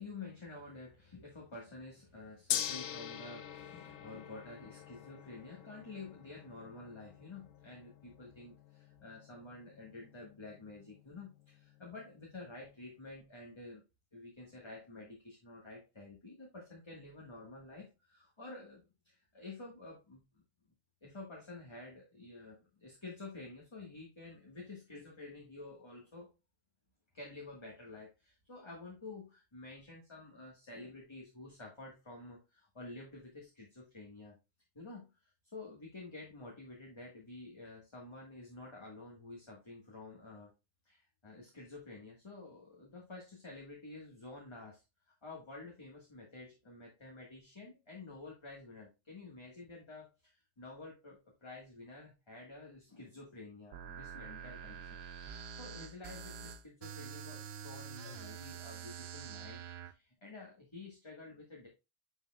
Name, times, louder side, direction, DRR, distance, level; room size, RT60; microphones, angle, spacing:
voice 1, 0.0-13.8 14.1-20.2 21.0-26.3 27.1-34.4 34.7-40.5 40.8-61.7, left 2 dB, 20° left, -2 dB, 1.6 m, -50 dB
Gong, 2.5-12.7, left 10 dB, 85° left, 1.0 m, -45 dB
sound 1, 53.7-59.9, right 7 dB, 60° right, 0.8 m, -46 dB
9.7 x 4.5 x 2.4 m, 0.26 s
omnidirectional pair, 1.3 m